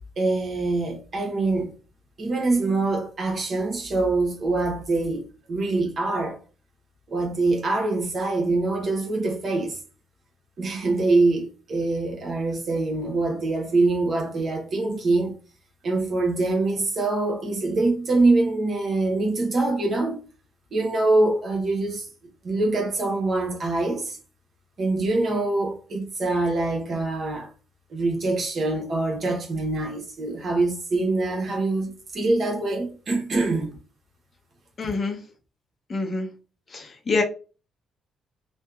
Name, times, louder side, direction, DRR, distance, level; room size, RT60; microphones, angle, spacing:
voice 1, 0.2-1.7 2.2-6.4 7.1-9.8 10.6-15.3 15.8-20.2 20.7-22.1 22.4-24.2 24.8-27.5 27.9-33.7, right 2 dB, 50° right, 1.0 m, -24 dB
voice 2, 34.8-35.2 35.9-36.3 36.7-37.2, left 3 dB, 40° left, 0.7 m, -26 dB
2.8 x 2.3 x 2.4 m
cardioid pair, 90°, 0 cm